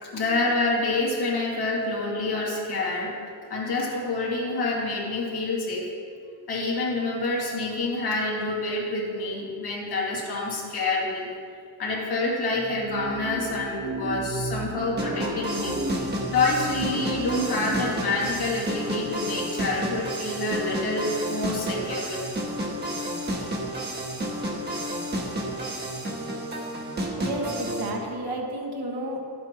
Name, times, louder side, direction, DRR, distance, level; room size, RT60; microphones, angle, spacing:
voice 1, 0.0-3.2 3.5-5.9 6.5-11.3 11.8-15.8 16.3-22.2, left 2 dB, 75° left, -4 dB, 2.2 m, -27 dB
sound 1, 12.5-19.7, right 3 dB, 45° right, 1.1 m, -35 dB
sound 2, 15.0-27.9, equal, 25° right, 1.2 m, -31 dB
voice 2, 27.2-29.2, right 1 dB, 70° right, 0 dB, 1.5 m, -31 dB
11.5 x 8.5 x 2.9 m, 2.3 s
wide cardioid pair, 155°, 39 cm